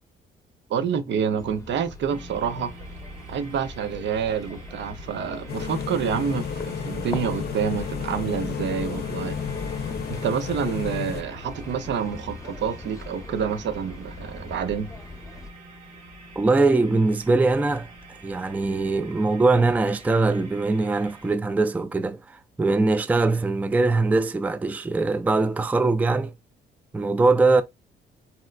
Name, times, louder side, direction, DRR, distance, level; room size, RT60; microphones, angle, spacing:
voice 1, 0.7-2.7 3.3-9.4 10.1-14.9, right 7 dB, 65° right, 0.7 m, -28 dB
sound 1, 1.4-15.5, left 2 dB, 15° left, 0.8 m, -42 dB
sound 2, 2.1-21.4, right 1 dB, 85° right, 1.4 m, -45 dB
sound 3, 5.5-11.2, left 6 dB, 55° left, 0.6 m, -31 dB
voice 2, 16.4-17.9 18.2-26.3 26.9-27.6, right 3 dB, 10° right, 0.3 m, -22 dB
4.3 x 2.1 x 2.3 m
cardioid pair, 90°, 20 cm